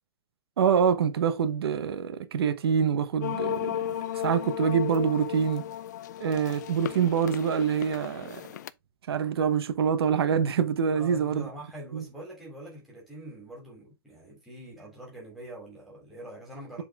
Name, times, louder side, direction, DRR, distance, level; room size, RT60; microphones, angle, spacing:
voice 1, 0.6-3.8 4.1-5.7 6.2-8.5 9.1-11.5 11.9-12.0, right 7 dB, 90° right, 1.0 m, -25 dB
sound 1, 3.2-8.7, left 11 dB, 50° left, 0.4 m, -35 dB
voice 2, 10.9-16.8, equal, ahead, 2.9 m, -44 dB
7.5 x 4.1 x 3.5 m
supercardioid pair, 175°, 13 cm